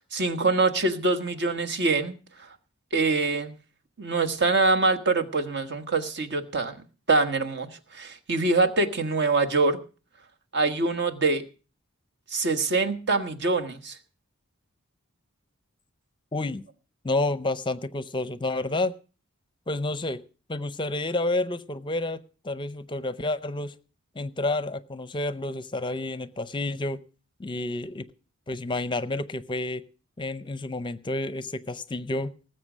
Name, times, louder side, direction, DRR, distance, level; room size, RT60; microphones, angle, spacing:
voice 1, 0.1-2.2 2.9-3.5 4.0-6.8 7.1-9.8 10.5-11.4 12.3-13.9, right 3 dB, 55° right, 6 dB, 1.4 m, -24 dB
voice 2, 16.3-16.6 17.0-18.9 19.7-20.2 20.5-23.7 24.2-27.0 27.4-28.0 28.5-29.8 30.2-32.3, left 2 dB, 25° left, 14 dB, 0.6 m, -29 dB
19.0 x 7.7 x 6.2 m, 0.37 s
head